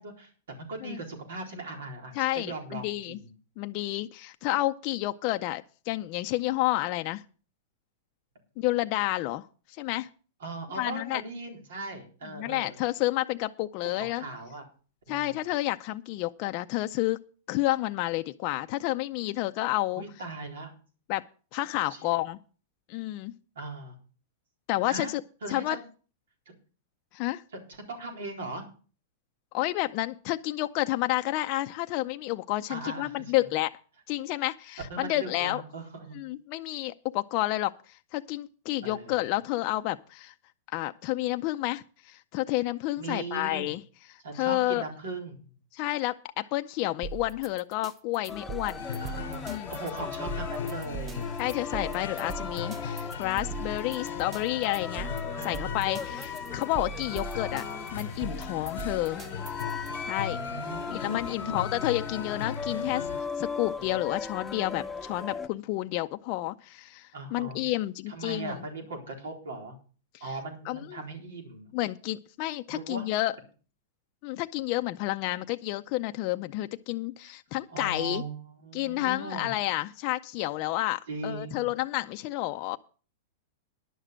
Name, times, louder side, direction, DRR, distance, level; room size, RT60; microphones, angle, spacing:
voice 1, 0.0-3.3 10.4-12.8 13.9-14.7 15.1-15.4 20.0-20.7 21.9-22.1 23.6-24.0 24.9-25.1 25.4-25.8 27.5-27.6 27.9-28.6 32.7-33.1 34.9-36.2 38.8-39.2 43.0-43.7 44.2-45.5 49.0-49.4 49.7-51.2 55.3-56.0 60.4-61.7 67.1-67.6 68.1-69.8 70.2-71.7 72.7-73.1 77.7-79.5 81.1-81.7, right 3 dB, 80° right, 3 dB, 4.1 m, -39 dB
voice 2, 2.1-3.2 3.6-7.2 8.6-9.5 9.8-10.1 10.8-11.2 12.3-14.2 15.1-17.2 17.5-20.0 21.1-21.2 21.5-22.4 22.9-23.3 24.7-25.2 25.5-25.8 27.1-27.4 29.5-33.7 34.1-35.6 36.1-40.3 40.7-43.8 44.1-44.8 45.7-48.8 49.5-49.7 51.4-55.1 55.4-57.6 57.9-59.2 60.0-60.4 60.9-63.1 63.4-68.5 70.7-71.0 71.7-73.4 74.2-78.2 78.7-82.8, left 17 dB, 45° left, 7 dB, 0.5 m, -30 dB
sound 1, 47.0-59.9, right 6 dB, 25° right, 0.8 m, -41 dB
sound 2, 48.3-65.5, left 5 dB, 10° left, 0.8 m, -38 dB
sound 3, 48.8-63.2, left 6 dB, 90° left, 0.9 m, -39 dB
11.0 x 6.6 x 7.5 m, 0.39 s
hypercardioid pair, 125°, 0 cm